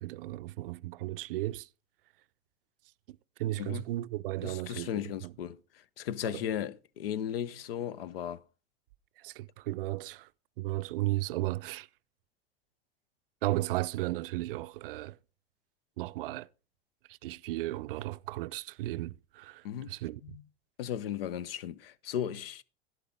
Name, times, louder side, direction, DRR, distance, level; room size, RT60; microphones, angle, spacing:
voice 1, 0.0-1.7 3.1-5.0 6.2-6.4 9.2-10.3 10.6-11.9 13.4-15.2 16.0-16.5 17.1-20.2, right 17 dB, 65° right, 0.5 m, -35 dB
voice 2, 4.4-8.4 19.6-19.9 20.2-20.4 20.8-22.6, left 10 dB, 70° left, 0.7 m, -36 dB
11.5 x 11.0 x 3.7 m
figure-of-eight pair, 70°, 30 cm